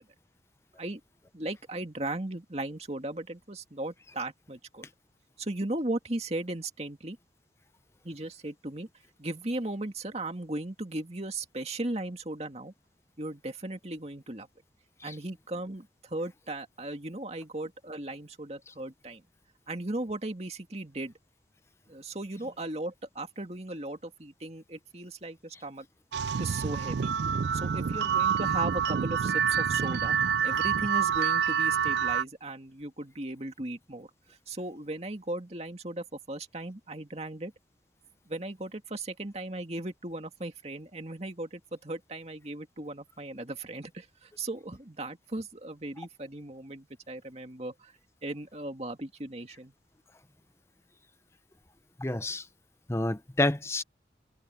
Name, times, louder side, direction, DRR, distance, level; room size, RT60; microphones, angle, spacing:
voice 1, 1.3-4.9 5.4-7.2 8.0-8.9 9.2-12.7 13.2-14.5 15.0-19.2 19.7-21.2 21.9-25.9 26.4-27.1 27.5-30.2 30.4-34.1 34.5-37.5 38.3-47.9 48.2-49.7, right 2 dB, 35° right, 2.1 m, -37 dB
sound 1, 26.1-32.2, right 7 dB, 75° right, 0.4 m, -27 dB
voice 2, 52.0-52.5 52.9-53.8, left 2 dB, 15° left, 0.7 m, -29 dB
head